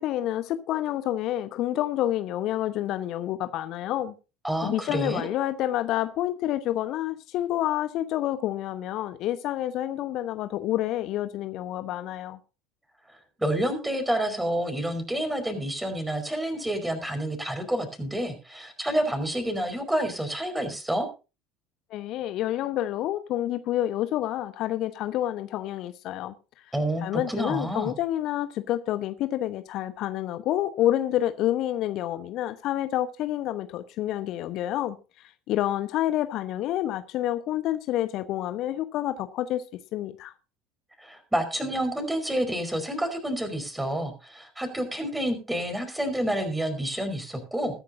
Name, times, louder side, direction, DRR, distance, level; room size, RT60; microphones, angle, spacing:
voice 1, 0.0-4.1 4.6-12.4 21.9-26.3 27.0-35.0 35.5-39.6 39.9-40.3, left 13 dB, 50° left, 1.1 m, -28 dB
voice 2, 4.4-5.3 13.4-21.1 26.7-27.9 41.0-47.7, right 1 dB, 10° right, 4.9 m, -29 dB
21.0 x 10.5 x 2.7 m
figure-of-eight pair, 65°, 0 cm